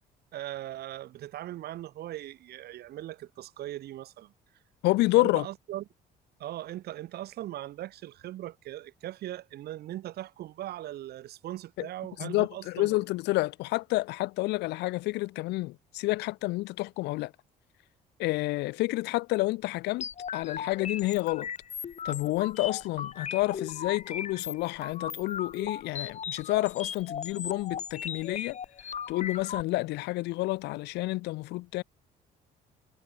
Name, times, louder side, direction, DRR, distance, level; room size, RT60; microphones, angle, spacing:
voice 1, 0.3-4.3 5.1-5.8 6.4-13.0, right 14 dB, 70° right, 7.5 m, -39 dB
voice 2, 4.8-5.5 11.8-11.9 12.2-17.3 18.2-21.5 22.0-28.6 29.1-31.8, left 20 dB, 85° left, 0.9 m, -29 dB
sound 1, 20.0-29.6, left 7 dB, 45° left, 6.9 m, -37 dB
cardioid pair, 110°, 17 cm